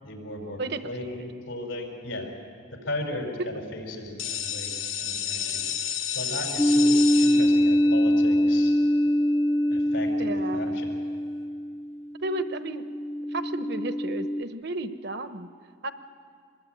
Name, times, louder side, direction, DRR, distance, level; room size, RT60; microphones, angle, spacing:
voice 1, 0.0-2.3 2.7-5.8 6.1-8.7 9.7-10.9, left 1 dB, 90° left, 2 dB, 5.6 m, -36 dB
sound 1, 4.2-9.8, left 8 dB, 70° left, 2.0 m, -33 dB
sound 2, 6.6-14.4, equal, 10° left, 0.6 m, -24 dB
voice 2, 10.2-10.8 12.2-12.8 13.3-15.5 15.8-15.9, right 2 dB, 55° right, 10 dB, 1.1 m, -33 dB
25.0 x 20.5 x 9.3 m, 2.1 s
head